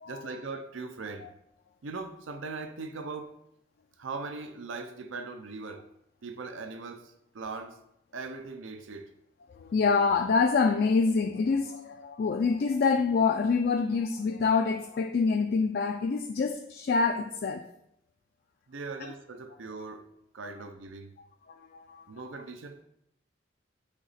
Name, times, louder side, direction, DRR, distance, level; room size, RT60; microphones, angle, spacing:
voice 1, 0.1-1.3 1.8-3.4 4.0-5.9 6.2-7.8 8.1-9.1 18.7-20.1 20.3-21.2 22.1-22.8, right 4 dB, 80° right, 7 dB, 0.5 m, -40 dB
voice 2, 9.5-17.6 19.0-19.1 21.7-22.0, left 4 dB, 50° left, 6 dB, 0.3 m, -26 dB
8.1 x 2.9 x 4.1 m, 0.78 s
head